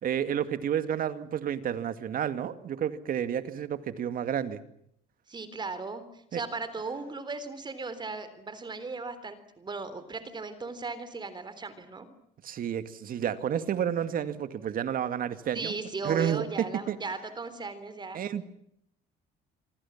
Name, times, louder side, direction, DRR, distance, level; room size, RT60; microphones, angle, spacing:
voice 1, 0.0-4.6 6.3-6.4 12.4-15.7 16.0-17.0 18.1-18.5, right 9 dB, 55° right, 11 dB, 2.2 m, -30 dB
voice 2, 5.3-12.1 15.5-18.2, right 3 dB, 25° right, 13 dB, 3.7 m, -37 dB
26.0 x 26.0 x 7.4 m, 0.72 s
cardioid pair, 110°, 17 cm